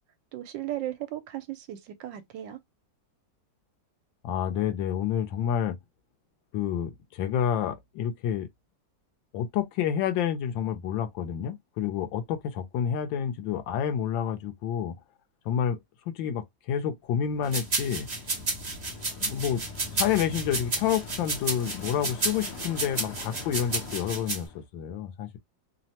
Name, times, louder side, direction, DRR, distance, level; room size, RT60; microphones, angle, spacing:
voice 1, 0.3-2.6, right 13 dB, 80° right, 1.3 m, -36 dB
voice 2, 4.2-5.8 6.5-8.5 9.3-14.9 15.4-15.8 16.1-18.1 19.2-19.6 20.0-25.4, left 9 dB, 90° left, 1.3 m, -29 dB
Bicycle, 17.1-24.6, left 3 dB, 65° left, 1.2 m, -43 dB
sound 1, 17.5-24.4, right 3 dB, 50° right, 0.5 m, -31 dB
3.3 x 2.0 x 2.7 m
omnidirectional pair, 2.0 m